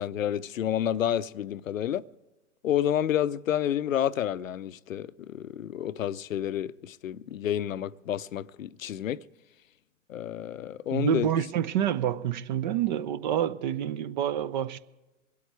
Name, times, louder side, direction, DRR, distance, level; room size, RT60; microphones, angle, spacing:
voice 1, 0.0-2.0 2.6-9.2 10.1-11.3, left 10 dB, 80° left, 0.6 m, -29 dB
voice 2, 10.9-14.8, right 10 dB, 35° right, 0.5 m, -28 dB
24.0 x 8.5 x 4.7 m
hypercardioid pair, 125°, 39 cm